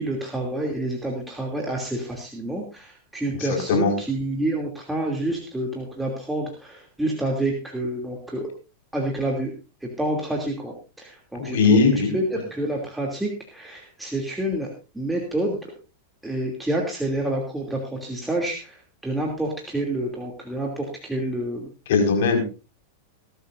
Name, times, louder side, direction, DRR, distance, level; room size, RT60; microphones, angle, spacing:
voice 1, 0.0-8.5 8.9-9.5 9.8-14.7 14.9-15.7 16.2-21.7, right 1 dB, 5° right, 0 dB, 2.9 m, -28 dB
voice 2, 11.4-12.1 21.9-22.4, left 4 dB, 65° left, 3 dB, 5.2 m, -19 dB
20.5 x 12.5 x 2.6 m, 0.32 s
hypercardioid pair, 100°, 0 cm